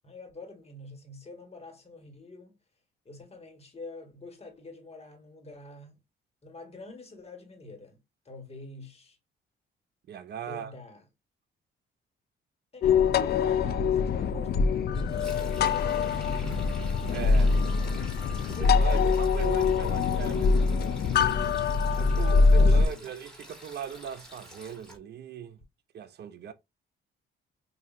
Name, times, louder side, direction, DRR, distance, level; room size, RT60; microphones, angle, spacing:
voice 1, 0.0-2.6 3.0-6.0 6.4-8.0 8.2-9.2 10.4-11.1 12.7-16.3 18.5-19.7 22.5-23.1, left 2 dB, 30° left, 1.6 m, -46 dB
voice 2, 10.1-10.7 17.1-17.5 18.5-21.0 21.9-25.6 25.9-26.5, right 9 dB, 55° right, 0.5 m, -39 dB
sound 1, 12.8-22.9, left 4 dB, 55° left, 0.4 m, -24 dB
Sink (filling or washing), 14.9-25.0, equal, 5° left, 1.9 m, -48 dB
5.2 x 2.7 x 2.5 m
cardioid pair, 90°, 20 cm